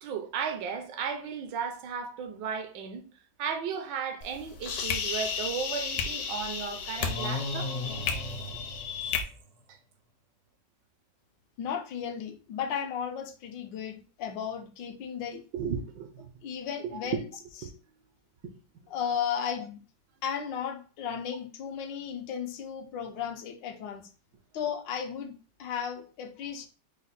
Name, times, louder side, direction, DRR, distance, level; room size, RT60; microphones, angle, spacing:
voice 1, 0.0-3.0 3.4-7.7 9.7-9.8 15.5-16.3 16.8-17.2 17.6-17.7 19.3-19.4, right 6 dB, 75° right, 1.3 m, -35 dB
sound 1, 4.2-9.2, left 6 dB, 65° left, 1.1 m, -33 dB
sound 2, 7.0-9.5, left 2 dB, 50° left, 0.4 m, -36 dB
voice 2, 11.6-15.4 16.4-17.2 18.9-19.8 20.2-24.1 24.5-25.3 25.6-26.7, left 8 dB, 80° left, 1.3 m, -34 dB
4.9 x 2.1 x 4.1 m
omnidirectional pair, 2.0 m